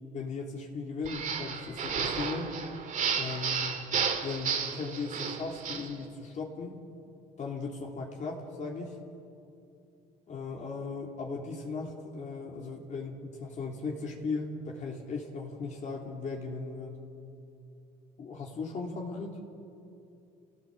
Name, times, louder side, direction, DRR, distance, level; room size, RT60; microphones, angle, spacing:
voice 1, 0.1-2.5 3.1-3.9 4.2-6.8 7.4-8.9 10.3-17.0 18.2-19.4, left 4 dB, 45° left, 0 dB, 3.1 m, -37 dB
sound 1, 1.0-5.9, right 6 dB, 50° right, 2.4 m, -32 dB
29.5 x 17.0 x 7.7 m, 2.7 s
cardioid pair, 110°, 17 cm